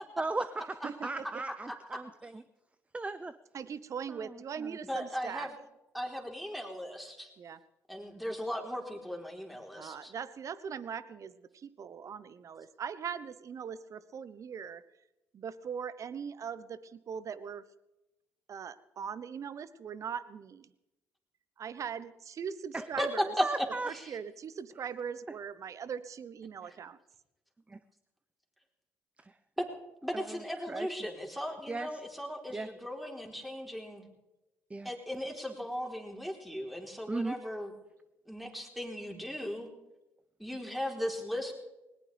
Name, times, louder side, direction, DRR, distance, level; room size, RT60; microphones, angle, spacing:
voice 1, 0.2-0.5 0.8-2.4 2.9-3.3 4.1-4.8 22.7-22.8 23.4-23.9 27.7-27.8 29.2-29.4 30.1-30.9 31.7-32.0 32.5-32.7 34.7-34.9 37.1-37.4, right 3 dB, 20° right, 14 dB, 0.6 m, -37 dB
voice 2, 0.8-1.2 3.5-5.5 7.4-7.6 9.7-14.8 15.3-17.6 18.5-20.7 21.6-23.3 23.9-27.0, right 7 dB, 50° right, 15 dB, 0.9 m, -40 dB
voice 3, 4.9-5.5 5.9-7.3 7.9-10.1 22.8-24.0 29.6-29.7 30.0-34.1 34.8-37.7 38.3-39.7 40.4-41.6, equal, ahead, 1 dB, 3.7 m, -37 dB
19.5 x 19.0 x 3.4 m, 0.97 s
hypercardioid pair, 50°, 7 cm